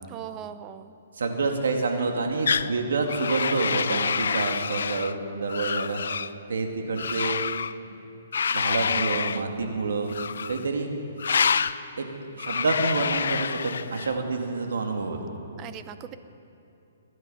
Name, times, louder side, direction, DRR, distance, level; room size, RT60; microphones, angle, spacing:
voice 1, 0.1-0.9 15.6-16.2, right 10 dB, 20° right, 12 dB, 0.6 m, -39 dB
voice 2, 1.2-6.0 6.5-7.4 7.8-8.0 8.5-10.1 10.5-10.9 12.0-12.1 12.3-15.3, right 3 dB, 85° right, 3 dB, 2.2 m, -28 dB
sound 1, 2.5-2.7 3.1-5.1 5.5-6.3 7.0-7.7 8.3-9.4 10.1-10.6 11.2-11.8 12.4-14.1, left 6 dB, 75° left, 0.4 m, -27 dB
23.0 x 11.0 x 5.7 m, 2.8 s
hypercardioid pair, 160°, 0 cm